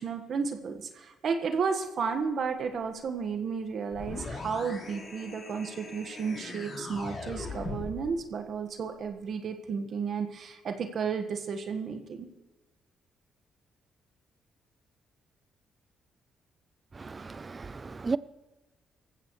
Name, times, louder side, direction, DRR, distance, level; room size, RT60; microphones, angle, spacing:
voice 1, 0.0-12.3, right 5 dB, 60° right, 1.5 m, -33 dB
sound 1, 3.9-8.1, left 2 dB, 40° left, 5.5 m, -40 dB
voice 2, 17.0-18.2, right 4 dB, 30° right, 0.5 m, -34 dB
19.0 x 15.0 x 3.2 m
cardioid pair, 90°, 0 cm